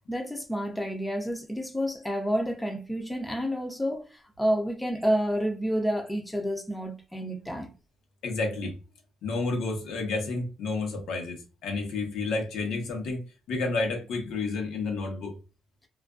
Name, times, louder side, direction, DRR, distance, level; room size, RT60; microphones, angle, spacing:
voice 1, 0.1-7.8, equal, 5° left, 0.4 m, -29 dB
voice 2, 8.2-8.7 9.2-15.4, left 3 dB, 85° left, 0.8 m, -30 dB
2.4 x 2.2 x 2.3 m
cardioid pair, 135°, 0 cm